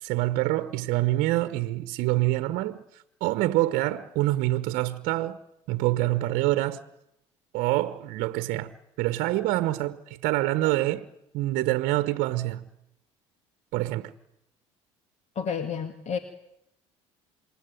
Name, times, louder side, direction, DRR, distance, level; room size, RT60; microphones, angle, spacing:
voice 1, 0.0-5.4 5.7-6.8 7.5-8.7 9.0-11.1 11.3-12.6 13.7-14.1, right 17 dB, 65° right, 1.2 m, -26 dB
voice 2, 15.4-16.2, left 6 dB, 45° left, 2.4 m, -30 dB
27.5 x 23.5 x 9.4 m
hypercardioid pair, 65°, 16 cm